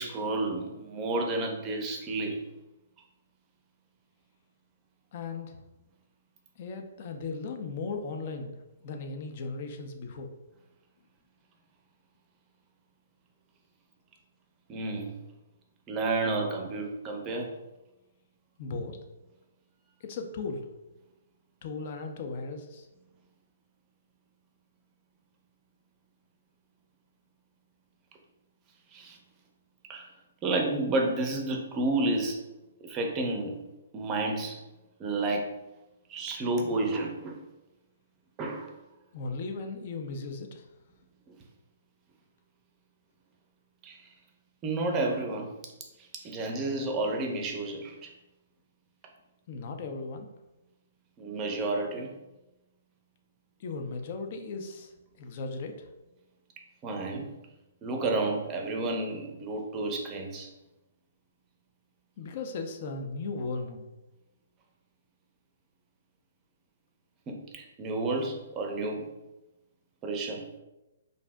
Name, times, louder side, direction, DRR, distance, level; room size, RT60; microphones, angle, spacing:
voice 1, 0.0-2.4 14.7-15.1 15.9-17.5 28.9-29.2 29.9-30.1 30.4-32.4 32.8-33.5 33.9-34.6 35.0-35.5 36.1-37.4 38.4-38.7 43.8-44.0 44.6-45.5 46.2-48.1 51.2-52.1 56.8-57.3 57.8-60.5 67.3-69.1 70.0-70.4, right 2 dB, 25° right, 2 dB, 0.5 m, -31 dB
voice 2, 5.1-5.6 6.6-8.6 8.8-10.3 18.6-19.0 20.0-20.7 21.6-22.9 39.1-40.6 49.5-50.3 53.6-54.9 55.2-55.9 62.2-63.9, left 3 dB, 50° left, 5 dB, 0.4 m, -37 dB
2.5 x 2.0 x 3.4 m, 1.0 s
hypercardioid pair, 135°, 0 cm